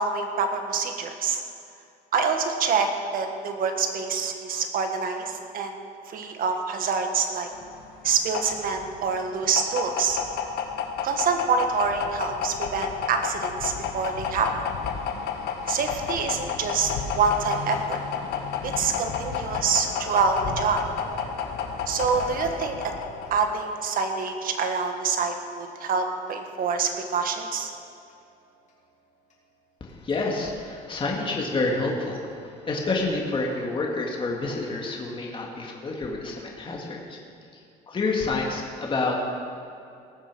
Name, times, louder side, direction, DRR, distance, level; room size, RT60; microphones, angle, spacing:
voice 1, 0.0-1.4 2.1-5.8 6.1-7.5 8.0-10.2 11.0-14.5 15.7-18.0 18.6-20.8 21.9-22.9 23.3-27.7, right 5 dB, 55° right, 5 dB, 1.6 m, -26 dB
sound 1, 7.6-23.6, left 7 dB, 75° left, 1.4 m, -31 dB
Tick-tock, 19.8-30.7 31.1-31.2 31.7-31.8 32.3-32.4 32.9-33.0 33.5-33.6 34.1-34.2 34.7-34.8, equal, 45° left, 3.2 m, -47 dB
voice 2, 29.8-32.2 32.7-37.2 37.9-39.2, left 3 dB, 30° left, -1 dB, 2.0 m, -28 dB
19.0 x 7.2 x 6.1 m, 2.6 s
cardioid pair, 110°, 17 cm